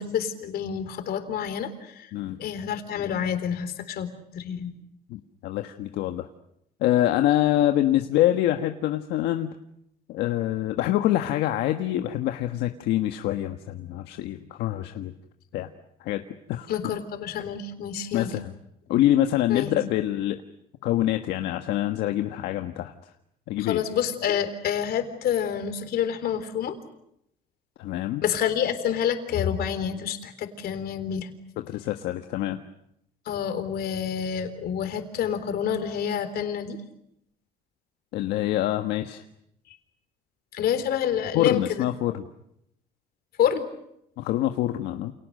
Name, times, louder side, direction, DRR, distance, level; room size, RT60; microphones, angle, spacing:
voice 1, 0.0-2.1 2.4-4.7 16.7-18.3 19.5-19.7 23.6-26.8 28.2-31.3 33.3-36.8 40.5-41.9 43.4-43.7, left 8 dB, 65° left, 9 dB, 3.7 m, -28 dB
voice 2, 5.1-6.3 6.8-9.5 10.1-15.1 15.5-15.7 16.0-16.2 16.5-16.7 18.1-18.5 18.9-20.4 20.8-22.9 23.5-23.8 27.8-28.2 31.7-32.6 38.1-39.2 41.3-42.3 44.2-45.1, left 13 dB, 85° left, 6 dB, 1.4 m, -25 dB
29.5 x 28.5 x 6.6 m, 0.78 s
cardioid pair, 110°, 17 cm